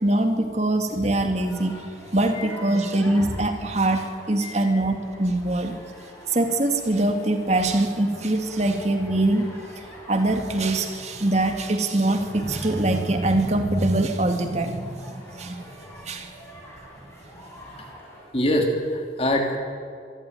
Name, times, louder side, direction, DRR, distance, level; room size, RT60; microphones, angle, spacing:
voice 1, 0.0-1.8 2.1-5.8 6.3-15.6 16.0-16.3, right 2 dB, 40° right, 5 dB, 2.3 m, -23 dB
sound 1, 1.3-18.2, equal, 15° left, 5.9 m, -45 dB
voice 2, 2.4-2.8 4.4-4.8 18.3-19.6, left 1 dB, 35° left, 2 dB, 2.8 m, -25 dB
24.5 x 15.0 x 9.3 m, 2.3 s
head